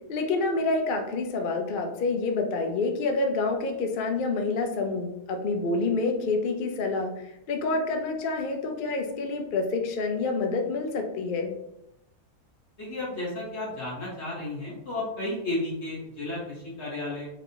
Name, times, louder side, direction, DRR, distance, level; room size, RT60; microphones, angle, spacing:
voice 1, 0.1-11.5, left 3 dB, 75° left, 4 dB, 0.4 m, -28 dB
voice 2, 12.8-17.3, left 2 dB, 45° left, -6 dB, 1.7 m, -33 dB
5.0 x 2.7 x 2.7 m, 0.83 s
omnidirectional pair, 1.7 m